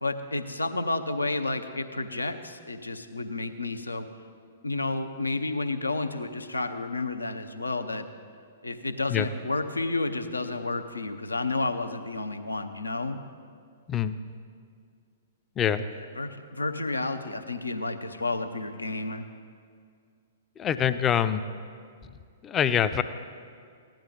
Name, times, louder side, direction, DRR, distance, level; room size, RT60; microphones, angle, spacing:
voice 1, 0.0-4.1 4.6-8.0 8.6-13.2 15.9-19.2, left 2 dB, 80° left, 8 dB, 0.7 m, -31 dB
voice 2, 20.6-21.4 22.4-23.0, left 9 dB, 20° left, 11 dB, 0.5 m, -24 dB
15.5 x 10.5 x 3.8 m, 2.2 s
figure-of-eight pair, 110°, 0 cm